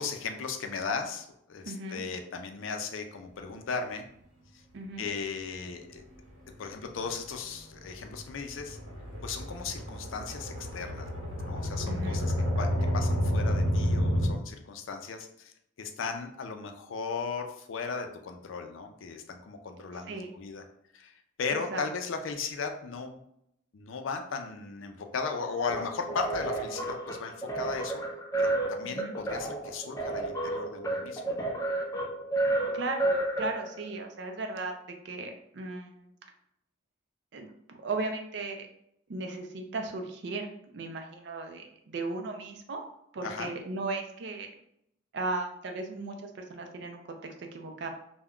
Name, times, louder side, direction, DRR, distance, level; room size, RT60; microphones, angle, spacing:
voice 1, 0.0-4.1 4.5-4.6 5.0-6.0 6.6-8.8 9.2-11.1 11.4-20.6 20.9-23.2 23.7-28.0 28.4-31.5 43.2-43.5, left 5 dB, 80° left, 5 dB, 0.4 m, -36 dB
voice 2, 1.7-2.0 4.7-5.1 11.8-12.2 20.1-20.3 21.7-21.8 28.9-29.1 32.5-34.7 35.0-36.1 37.3-38.7 39.1-40.5 40.7-42.8 43.1-44.5 45.1-47.0 47.5-47.9, right 3 dB, 60° right, 3 dB, 0.4 m, -36 dB
sound 1, 6.0-6.2 6.6-6.7 6.9-7.0 7.4-7.5 7.7-14.3, equal, 80° right, 0.8 m, -30 dB
sound 2, 25.7-33.9, right 2 dB, 15° left, 0.4 m, -31 dB
2.2 x 2.1 x 3.5 m, 0.76 s
head